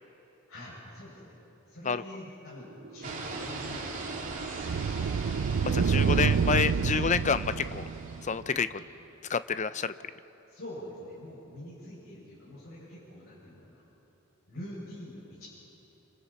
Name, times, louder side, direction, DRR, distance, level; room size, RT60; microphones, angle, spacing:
voice 1, 0.5-1.3 1.7-4.5 8.7-8.9 10.5-13.8 14.5-15.5, left 1 dB, 90° left, -9 dB, 7.0 m, -45 dB
sound 1, 2.8-8.4, right 6 dB, 70° right, 0.4 m, -29 dB
sound 2, 3.0-8.4, right 3 dB, 40° right, 2.5 m, -41 dB
voice 2, 5.7-7.8 8.2-8.7 9.3-9.9, left 5 dB, 35° left, 13 dB, 0.6 m, -28 dB
28.0 x 27.0 x 4.3 m, 3.0 s
head